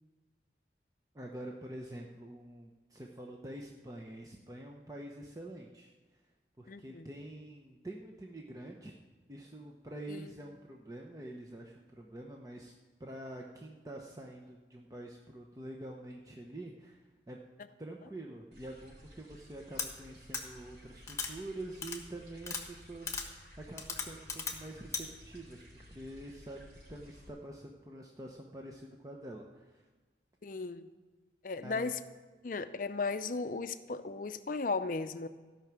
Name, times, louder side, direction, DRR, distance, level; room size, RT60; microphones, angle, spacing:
voice 1, 1.1-6.2 6.6-8.9 9.3-12.7 13.0-17.4 17.8-29.9 31.6-31.9, right 1 dB, 20° right, 0 dB, 0.7 m, -46 dB
voice 2, 6.7-7.1 10.1-10.3 30.4-30.9 31.4-32.0 32.4-35.3, left 4 dB, 50° left, 12 dB, 0.5 m, -36 dB
sound 1, 18.5-27.3, equal, 85° right, 4.2 m, -55 dB
sound 2, 19.8-19.9 20.3-20.4 21.1-21.3 21.8-22.0 22.4-22.6 23.1-23.3 23.8-24.6 24.9-25.0, left 5 dB, 15° left, 1.3 m, -36 dB
15.5 x 5.9 x 7.5 m, 1.3 s
head